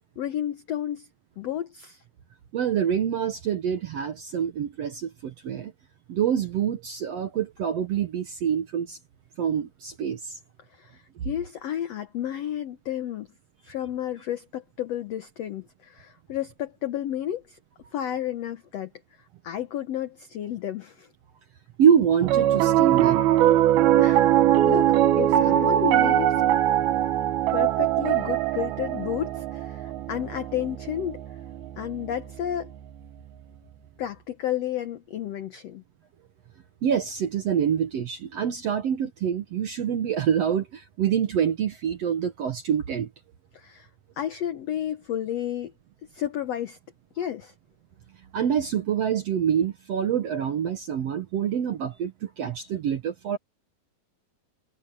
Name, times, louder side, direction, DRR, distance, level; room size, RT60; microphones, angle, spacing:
voice 1, 0.2-1.1 1.4-2.0 10.7-13.3 13.6-17.6 17.9-18.9 19.4-21.1 24.0-24.3 24.6-26.4 27.5-31.2 31.8-32.7 34.0-35.8 43.5-43.9 44.2-45.7 46.1-46.8 47.1-47.5, left 11 dB, 85° left, 1.4 m, -31 dB
voice 2, 2.5-5.7 6.1-9.0 9.4-10.4 11.2-11.3 21.8-23.3 36.8-43.1 48.3-53.4, right 8 dB, 65° right, 1.6 m, -26 dB
Piano, 22.2-32.6, right 12 dB, 85° right, 3.1 m, -22 dB
omnidirectional pair, 4.2 m